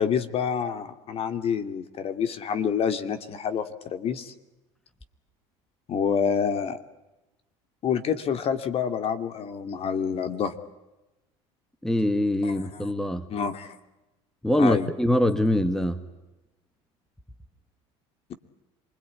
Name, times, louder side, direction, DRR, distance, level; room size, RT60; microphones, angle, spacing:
voice 1, 0.0-4.3 5.9-6.8 7.8-10.5 12.4-12.9 13.3-13.8 14.6-14.9, left 7 dB, 45° left, 9 dB, 2.6 m, -27 dB
voice 2, 11.8-13.3 14.4-16.0, left 1 dB, 5° left, 10 dB, 1.7 m, -23 dB
27.0 x 21.5 x 9.8 m, 1.0 s
supercardioid pair, 105°, 14 cm